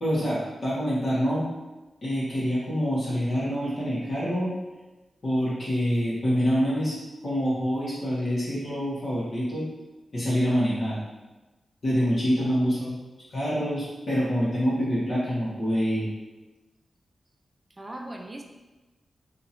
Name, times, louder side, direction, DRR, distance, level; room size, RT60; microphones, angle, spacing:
voice 1, 0.0-1.5 2.0-4.5 5.2-7.0 7.2-9.7 10.1-11.0 11.8-13.0 13.3-16.1, equal, 55° left, -9 dB, 1.3 m, -26 dB
voice 2, 12.4-12.9 17.7-18.4, right 1 dB, 25° right, 2 dB, 0.5 m, -40 dB
2.9 x 2.9 x 4.0 m, 1.1 s
cardioid pair, 65°, 0 cm